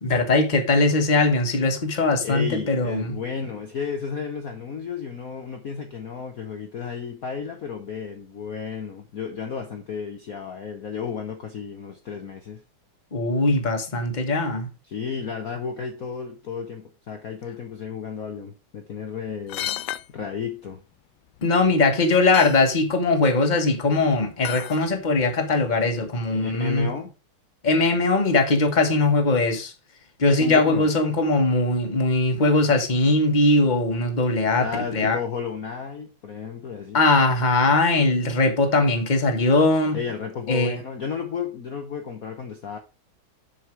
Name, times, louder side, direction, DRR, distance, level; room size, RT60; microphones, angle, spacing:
voice 1, 0.0-3.2 13.1-14.7 21.4-26.9 27.6-29.7 30.2-34.7 34.9-35.2 36.9-40.0 40.5-40.8, left 2 dB, 25° left, 1.4 m, -20 dB
voice 2, 2.2-12.6 14.9-19.7 20.1-20.8 26.3-27.1 30.4-30.9 34.6-37.0 39.9-42.8, left 6 dB, 50° left, 1.3 m, -33 dB
sound 1, 19.5-20.1 21.4-21.5 22.0-22.1 22.3-22.6 24.4-24.9 25.3-25.4, left 14 dB, 75° left, 1.0 m, -31 dB
7.2 x 6.6 x 4.6 m
omnidirectional pair, 2.3 m